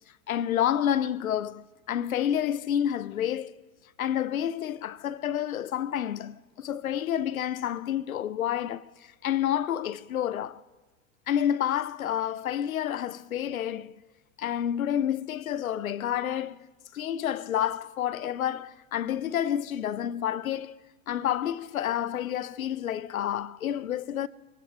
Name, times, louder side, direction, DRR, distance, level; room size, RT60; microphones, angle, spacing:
voice 1, 0.3-3.5 4.0-10.6 11.3-13.9 14.4-16.7 16.9-20.8 21.1-24.3, left 10 dB, 90° left, 0.6 m, -29 dB
23.5 x 18.0 x 3.0 m
hypercardioid pair, 110°, 41 cm